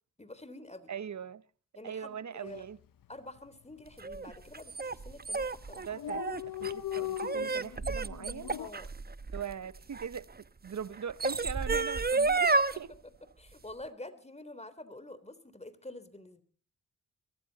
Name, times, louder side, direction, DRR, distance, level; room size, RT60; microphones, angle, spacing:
voice 1, 0.2-0.9 1.8-2.6 3.1-6.0 8.6-8.9 12.9-13.0 13.4-16.4, left 1 dB, 20° left, 3.5 m, -47 dB
voice 2, 0.9-1.4 1.8-2.8 5.9-8.5 9.3-10.3 10.6-12.9, right 8 dB, 55° right, 1.0 m, -41 dB
Dog, 2.5-2.7 3.0-3.1 3.4-4.1 4.7-4.9 5.2-5.3 5.5-5.6 5.8-8.7, left 13 dB, 75° left, 1.0 m, -39 dB
sound 1, 4.0-10.2 10.9-12.7, right 3 dB, 30° right, 1.0 m, -31 dB
22.5 x 15.0 x 4.1 m
supercardioid pair, 45°, 34 cm